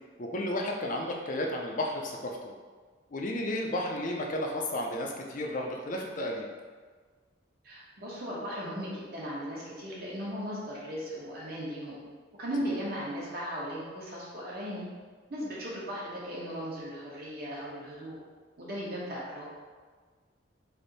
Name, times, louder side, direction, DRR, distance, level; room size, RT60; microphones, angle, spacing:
voice 1, 0.2-2.5 3.1-6.5 12.7-12.8, left 1 dB, 40° left, 1 dB, 0.5 m, -33 dB
voice 2, 7.6-12.0 12.4-14.9 15.3-18.2 18.6-19.5, equal, 50° right, -6 dB, 1.0 m, -37 dB
3.5 x 2.7 x 3.9 m, 1.5 s
head